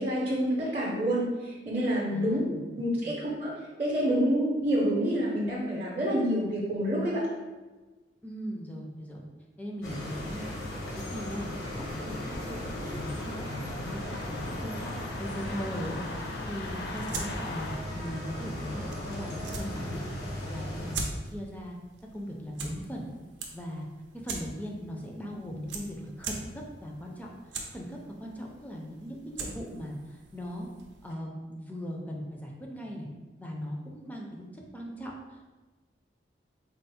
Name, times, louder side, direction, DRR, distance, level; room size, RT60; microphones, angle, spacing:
voice 1, 0.0-2.4 2.7-3.5 3.8-7.2, equal, 35° right, -5 dB, 0.7 m, -27 dB
voice 2, 2.1-3.2 8.2-9.2 9.6-11.5 11.7-21.7 22.1-23.0 23.5-23.9 24.2-27.3 27.7-30.7 31.0-33.1 33.4-35.5, equal, 10° left, -1 dB, 0.4 m, -39 dB
sound 1, 9.8-20.9, left 1 dB, 85° left, 1.0 m, -38 dB
sound 2, 10.0-17.8, left 2 dB, 65° left, 0.5 m, -40 dB
sound 3, 16.7-31.1, right 3 dB, 90° right, 0.6 m, -43 dB
4.3 x 2.0 x 4.1 m, 1.3 s
head